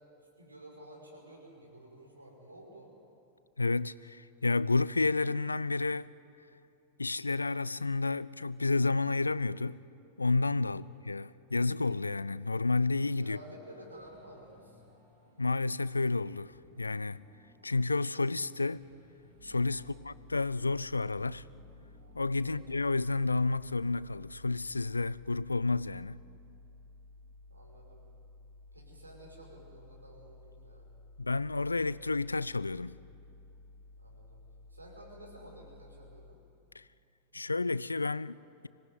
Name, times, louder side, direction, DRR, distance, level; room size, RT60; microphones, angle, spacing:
voice 1, 0.4-2.9 10.6-10.9 11.3-11.4 13.2-14.8 19.8-20.1 22.4-22.6 27.5-28.1 28.7-30.9 34.0-34.4 34.7-36.4, right 1 dB, 80° right, 5.5 m, -52 dB
voice 2, 3.6-6.1 7.0-9.8 10.2-13.4 15.4-17.2 17.6-18.8 19.4-21.5 22.1-26.2 31.2-33.0 36.7-36.9 37.3-38.7, left 3 dB, 80° left, 0.5 m, -31 dB
sound 1, 13.9-23.5, left 1 dB, 60° right, 7.7 m, -63 dB
sound 2, 19.4-36.3, left 2 dB, 40° right, 6.6 m, -55 dB
25.5 x 18.0 x 9.4 m
figure-of-eight pair, 90°, 0 cm